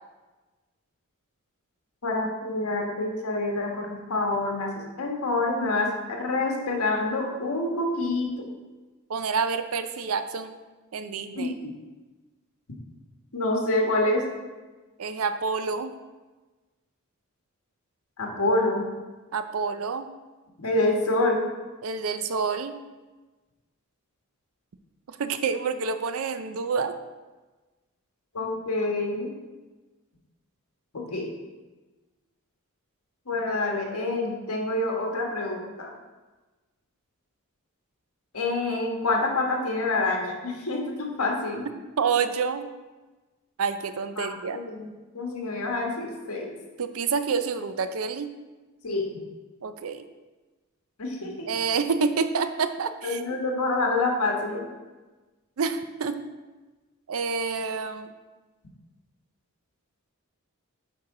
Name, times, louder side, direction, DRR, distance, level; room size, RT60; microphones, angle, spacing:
voice 1, 2.0-8.5 11.4-11.5 13.3-14.2 18.2-18.9 20.6-21.5 28.3-29.3 30.9-31.3 33.3-35.9 38.3-41.6 44.2-46.5 48.8-49.0 51.0-51.5 53.0-54.7, left 2 dB, 85° left, 0 dB, 1.3 m, -27 dB
voice 2, 9.1-10.5 10.9-11.5 15.0-15.9 19.3-20.1 21.8-22.7 25.1-26.9 42.0-42.7 43.6-44.6 46.8-48.3 49.6-50.0 51.5-53.2 55.6-56.2 57.1-58.1, right 5 dB, 70° right, 10 dB, 0.5 m, -28 dB
8.4 x 4.5 x 3.8 m, 1.2 s
head